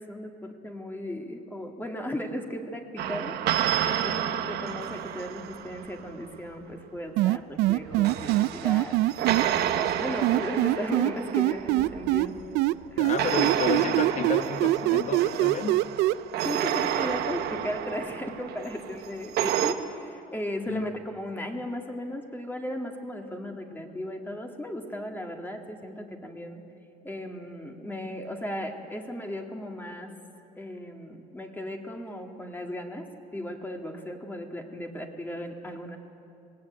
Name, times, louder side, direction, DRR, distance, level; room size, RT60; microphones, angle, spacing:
voice 1, 0.0-9.0 9.3-12.4 12.9-13.1 16.4-26.6 27.0-30.2 30.6-36.0, left 1 dB, 10° left, 2.0 m, -36 dB
sound 1, 3.0-6.1 7.7-12.6 13.2-19.7, right 10 dB, 75° right, 1.1 m, -30 dB
sound 2, 7.2-9.4 10.2-12.3 12.5-16.1, right 18 dB, 90° right, 0.4 m, -23 dB
voice 2, 12.9-15.9 20.7-21.0, left 7 dB, 45° left, 1.2 m, -31 dB
19.0 x 17.5 x 8.8 m
cardioid pair, 110°, 17 cm